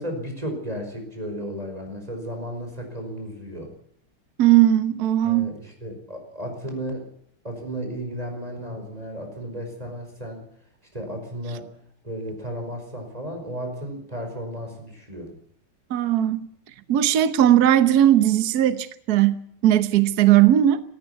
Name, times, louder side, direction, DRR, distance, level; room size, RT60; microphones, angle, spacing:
voice 1, 0.0-3.7 5.2-7.1 7.4-10.5 10.9-11.7 12.0-15.3, equal, 15° right, 5.2 m, -34 dB
voice 2, 4.4-5.5 15.9-16.5 16.9-20.8, right 12 dB, 55° right, 1.3 m, -18 dB
17.0 x 16.0 x 9.7 m
omnidirectional pair, 2.4 m